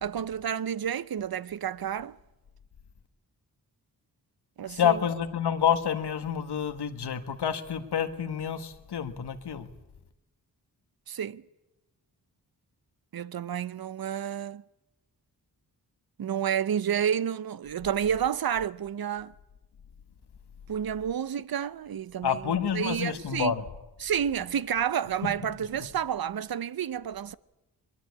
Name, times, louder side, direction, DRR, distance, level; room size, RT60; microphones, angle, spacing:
voice 1, 0.0-2.2 4.6-5.0 11.1-11.4 13.1-14.6 16.2-19.3 20.7-23.5 24.0-27.4, right 9 dB, 65° right, 0.8 m, -30 dB
voice 2, 4.7-9.7 22.2-23.6, left 8 dB, 85° left, 1.7 m, -28 dB
22.0 x 21.5 x 8.5 m
cardioid pair, 75°, 39 cm